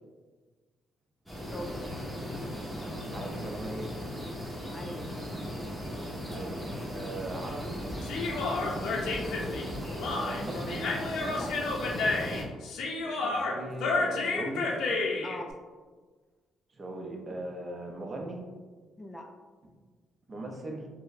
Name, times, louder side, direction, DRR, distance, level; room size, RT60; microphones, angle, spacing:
sound 1, 1.3-12.4, equal, ahead, 1.1 m, -37 dB
voice 1, 1.5-1.8 4.7-5.4 8.4-8.7 11.4-11.6 15.2-15.5 19.0-19.3, left 1 dB, 15° left, 3 dB, 0.3 m, -41 dB
voice 2, 3.1-4.0 6.3-7.8 10.2-10.9 13.1-14.7 16.8-18.4 20.3-20.9, right 1 dB, 35° right, 1 dB, 0.6 m, -39 dB
Human voice, 8.0-15.4, left 3 dB, 80° left, 0.5 m, -31 dB
4.5 x 2.1 x 2.5 m, 1.4 s
cardioid pair, 90°, 0 cm